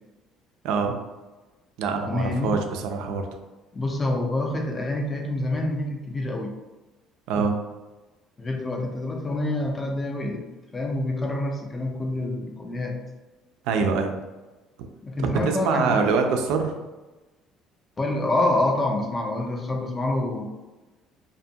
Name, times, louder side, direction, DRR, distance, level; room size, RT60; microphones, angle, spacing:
voice 1, 0.6-1.0 1.8-3.2 7.3-7.6 13.6-14.2 15.2-16.8, right 5 dB, 80° right, 5 dB, 0.3 m, -24 dB
voice 2, 2.0-2.5 3.7-6.5 8.4-10.5 10.7-13.0 15.0-16.1 18.0-20.5, left 2 dB, 15° left, 1 dB, 0.3 m, -27 dB
2.5 x 2.3 x 2.6 m, 1.1 s
cardioid pair, 175°, 0 cm